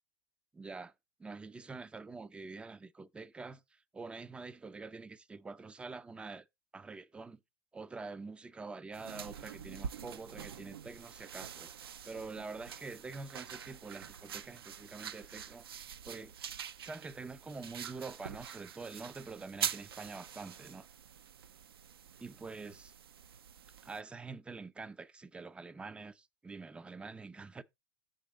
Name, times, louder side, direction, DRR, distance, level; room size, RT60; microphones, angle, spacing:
voice 1, 0.5-0.9 1.2-6.5 6.7-7.4 7.7-16.3 16.8-20.9 22.2-22.9 23.8-27.6, right 4 dB, 10° right, 0.4 m, -46 dB
sound 1, 8.9-24.0, right 8 dB, 70° right, 0.5 m, -45 dB
6.7 x 3.9 x 6.0 m
figure-of-eight pair, 95°, 13 cm